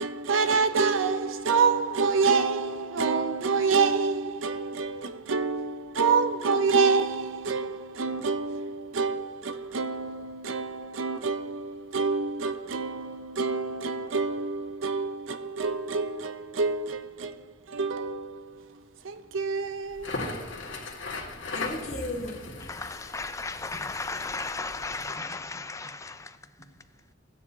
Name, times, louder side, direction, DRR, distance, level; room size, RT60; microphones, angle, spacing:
voice 1, 0.0-20.3, right 4 dB, 90° right, 0.6 m, -27 dB
Crackle, 19.9-25.2, left 3 dB, 70° left, 2.1 m, -38 dB
voice 2, 21.5-22.8 23.7-23.9 25.0-25.3 25.8-25.9 26.6-26.7, left 1 dB, 35° left, 1.9 m, -37 dB
voice 3, 22.7-26.4, left 3 dB, 15° left, 0.5 m, -35 dB
16.0 x 9.6 x 2.8 m
head